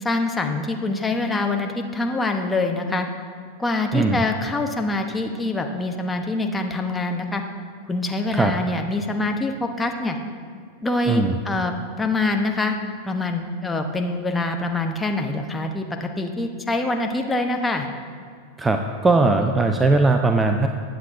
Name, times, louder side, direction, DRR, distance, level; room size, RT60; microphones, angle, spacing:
voice 1, 0.0-3.1 3.6-7.4 7.9-10.2 10.8-12.8 13.0-17.9, left 2 dB, 10° left, 3 dB, 1.0 m, -25 dB
voice 2, 3.9-4.2 8.3-8.5 11.1-11.4 18.6-20.7, right 3 dB, 15° right, 6 dB, 0.5 m, -19 dB
20.0 x 8.2 x 2.7 m, 2.2 s
figure-of-eight pair, 90°, 0 cm